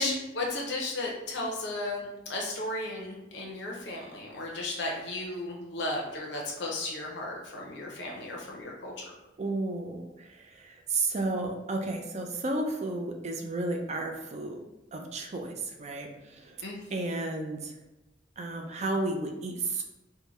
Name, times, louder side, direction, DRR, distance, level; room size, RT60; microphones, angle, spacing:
voice 1, 0.0-8.9 16.6-16.8, left 2 dB, 70° left, -1 dB, 0.6 m, -34 dB
voice 2, 9.4-14.6 14.9-16.6 16.9-17.8 18.4-19.8, right 2 dB, 40° right, 3 dB, 0.4 m, -33 dB
3.7 x 2.1 x 3.0 m, 0.98 s
head